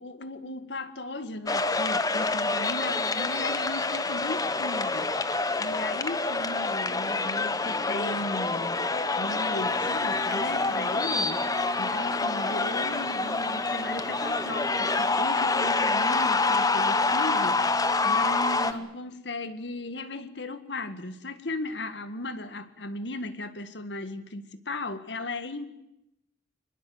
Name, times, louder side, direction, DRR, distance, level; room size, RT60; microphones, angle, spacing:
voice 1, 0.0-17.8 18.0-25.7, left 2 dB, 75° left, 11 dB, 1.8 m, -37 dB
sound 1, 1.5-18.7, left 3 dB, 20° left, 1.0 m, -27 dB
Microwave oven, 9.5-18.8, right 2 dB, 90° right, 6.1 m, -42 dB
24.5 x 21.5 x 7.9 m, 0.86 s
head